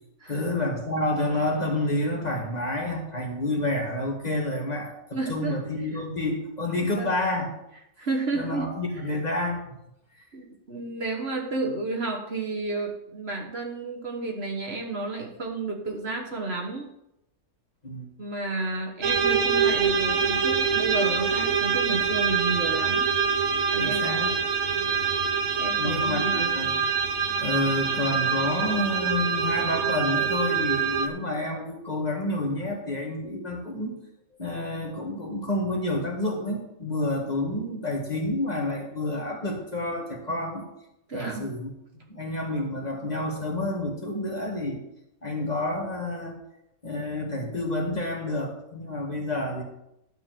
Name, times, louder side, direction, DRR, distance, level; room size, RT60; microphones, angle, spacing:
voice 1, 0.3-4.9 5.3-7.5 8.3-9.6 17.8-18.1 23.8-24.3 24.8-25.0 25.8-26.7 27.3-34.0 34.4-40.7 41.1-41.7 42.1-44.8 45.2-46.4 46.8-49.6, left 1 dB, 30° left, 0 dB, 1.7 m, -29 dB
voice 2, 5.1-5.6 6.9-7.1 8.0-8.7 10.3-16.9 18.2-23.1 23.7-24.0 25.6-26.5 41.1-41.5, right 3 dB, 45° right, 1 dB, 1.5 m, -31 dB
sound 1, 19.0-31.1, right 6 dB, 60° right, 1.2 m, -25 dB
11.5 x 4.6 x 7.6 m, 0.84 s
omnidirectional pair, 1.5 m